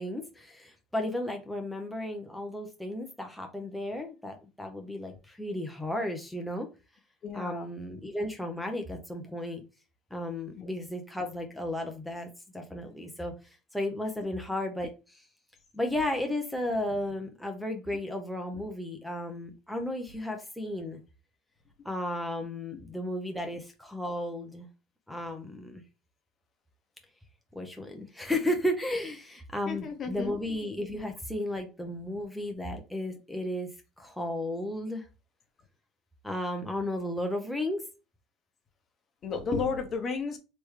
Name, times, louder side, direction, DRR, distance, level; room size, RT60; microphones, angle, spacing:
voice 1, 0.0-6.7 7.3-9.6 10.1-12.3 12.5-15.3 15.7-21.0 21.8-24.7 25.1-25.8 27.5-33.7 34.0-35.0 36.2-37.8, left 1 dB, ahead, 0.7 m, -34 dB
voice 2, 7.2-7.7 10.6-10.7 29.7-30.3 39.2-40.4, left 4 dB, 35° left, 0.9 m, -32 dB
3.5 x 3.1 x 3.2 m
cardioid pair, 120°, 0 cm